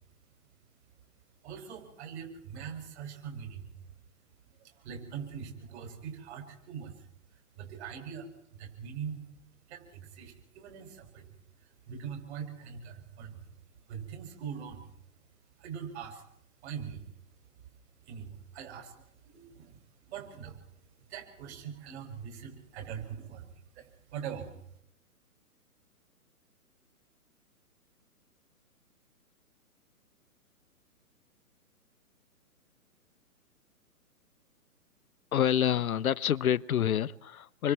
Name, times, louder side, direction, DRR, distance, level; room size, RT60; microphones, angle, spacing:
voice 1, 1.4-3.7 4.6-7.1 7.3-9.2 9.7-11.3 11.6-13.5 13.9-14.9 15.6-16.2 16.6-17.1 18.0-20.7 21.1-24.6, right 7 dB, 45° right, 6.5 m, -42 dB
voice 2, 35.3-37.7, left 10 dB, 65° left, 0.8 m, -27 dB
27.5 x 24.5 x 4.6 m
hypercardioid pair, 135°, 45 cm